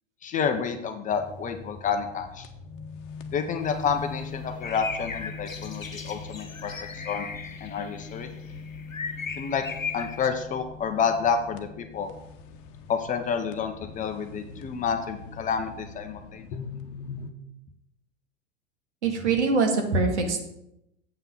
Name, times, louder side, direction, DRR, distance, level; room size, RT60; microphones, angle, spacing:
voice 1, 0.2-2.5 3.3-7.3 7.6-8.3 9.4-9.6 9.9-12.1 12.9-16.4, left 6 dB, 20° left, 6 dB, 0.8 m, -29 dB
sound 1, 1.1-17.3, left 5 dB, 40° left, 1.1 m, -42 dB
sound 2, 3.6-10.3, left 5 dB, 85° left, 0.9 m, -37 dB
voice 2, 19.0-20.4, right 4 dB, 60° right, 3 dB, 2.1 m, -23 dB
8.0 x 5.7 x 7.4 m, 0.82 s
figure-of-eight pair, 95°, 39 cm